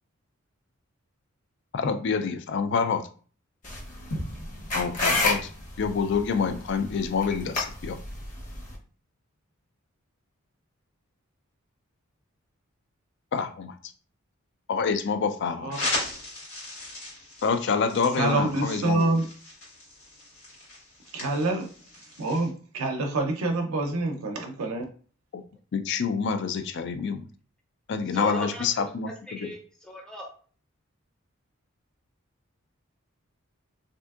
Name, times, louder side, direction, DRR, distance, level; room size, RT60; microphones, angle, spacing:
voice 1, 1.7-3.1 4.7-5.5 5.8-8.0 13.3-13.7 14.7-15.9 17.4-19.2 25.3-25.4 25.7-27.2 27.9-29.1 29.4-29.5, left 5 dB, 55° left, 9 dB, 0.3 m, -27 dB
sound 1, 3.6-8.8, left 2 dB, 35° left, 0.8 m, -31 dB
sound 2, 4.1-8.5, equal, 90° left, 0.8 m, -42 dB
sound 3, 15.7-22.5, left 1 dB, 70° left, 1.5 m, -37 dB
voice 2, 18.2-19.2 21.1-21.7 22.2-24.8, right 2 dB, 80° right, 3 dB, 0.6 m, -26 dB
voice 3, 28.1-28.8 29.3-30.3, equal, 5° left, -1 dB, 0.5 m, -36 dB
3.4 x 2.7 x 2.3 m, 0.41 s
head